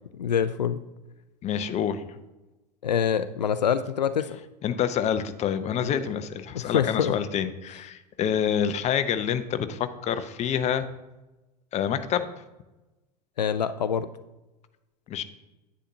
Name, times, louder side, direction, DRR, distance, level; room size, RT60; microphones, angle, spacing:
voice 1, 0.2-0.8 2.8-4.4 5.8-6.0 6.5-7.1 13.4-14.1, left 8 dB, 80° left, 12 dB, 0.4 m, -25 dB
voice 2, 1.4-2.0 4.6-10.9 11.7-12.3 15.1-15.2, left 8 dB, 35° left, 11 dB, 0.7 m, -27 dB
10.0 x 8.7 x 2.8 m, 1.0 s
figure-of-eight pair, 75°, 21 cm